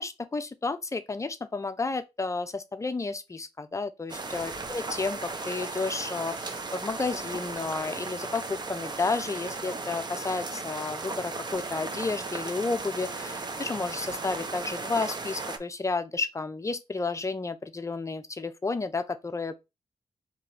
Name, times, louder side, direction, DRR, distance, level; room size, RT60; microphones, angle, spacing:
voice 1, 0.0-19.6, left 3 dB, 25° left, 0.5 m, -32 dB
sound 1, 4.1-15.6, right 3 dB, 35° right, 0.6 m, -36 dB
3.9 x 2.9 x 4.3 m
wide cardioid pair, 130°, 12 cm